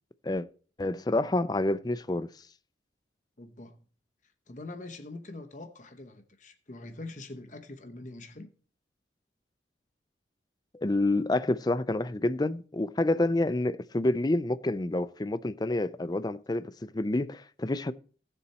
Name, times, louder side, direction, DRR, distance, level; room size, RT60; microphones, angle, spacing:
voice 1, 0.8-2.3 10.7-17.9, left 2 dB, 20° left, 0.4 m, -28 dB
voice 2, 3.4-3.8 4.5-8.5, left 2 dB, 45° left, 0.9 m, -44 dB
15.5 x 7.0 x 4.2 m
head